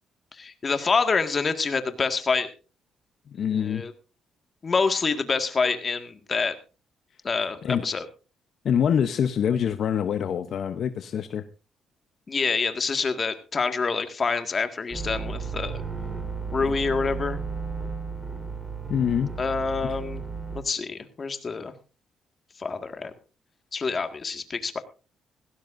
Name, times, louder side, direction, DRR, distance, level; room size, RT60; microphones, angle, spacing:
voice 1, 0.4-2.5 3.5-3.9 4.6-6.5 7.2-8.1 12.3-15.8 16.5-17.4 19.4-20.2 20.5-21.7 22.6-23.1 23.7-24.8, left 4 dB, 35° left, 7 dB, 1.9 m, -26 dB
voice 2, 3.3-3.8 7.6-7.8 8.6-11.4 18.9-19.3 19.8-19.9, left 8 dB, 65° left, 9 dB, 0.8 m, -25 dB
sound 1, 14.9-20.6, right 5 dB, 20° right, 4.3 m, -33 dB
17.5 x 16.0 x 2.6 m, 0.33 s
cardioid pair, 90°, 0 cm